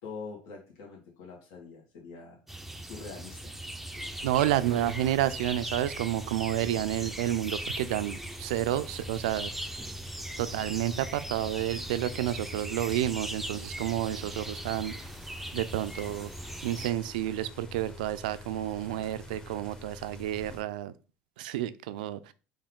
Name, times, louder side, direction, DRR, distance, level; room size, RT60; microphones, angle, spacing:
voice 1, 0.0-2.4 2.8-3.5 14.2-14.4, left 4 dB, 70° left, -1 dB, 1.5 m, -44 dB
sound 1, 2.5-16.9, right 1 dB, 5° right, 0.5 m, -40 dB
sound 2, 3.9-20.6, left 3 dB, 15° left, 0.9 m, -47 dB
voice 2, 4.2-9.5 10.4-14.9 15.5-16.3 16.6-20.9 21.4-22.3, right 13 dB, 90° right, 14 dB, 0.3 m, -30 dB
4.4 x 2.7 x 3.7 m, 0.36 s
supercardioid pair, 95°, 4 cm